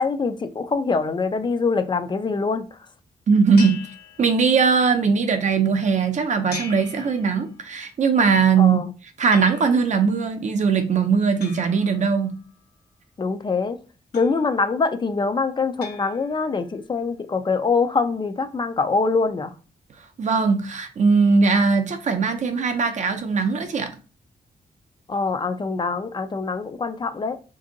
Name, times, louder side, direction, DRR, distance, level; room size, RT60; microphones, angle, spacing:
voice 1, 0.0-2.7 8.6-8.9 13.2-13.8 14.1-19.5 25.1-27.4, left 4 dB, 30° left, 0.3 m, -24 dB
voice 2, 3.3-3.8 4.2-8.8 9.2-12.4 20.2-23.9, right 5 dB, 50° right, 0.5 m, -20 dB
sound 1, 3.6-4.8 6.5-7.8 9.3-10.0 11.4-12.6 14.1-14.8 15.8-16.7, left 5 dB, 80° left, 1.3 m, -41 dB
3.5 x 2.6 x 3.8 m
wide cardioid pair, 160°, 16 cm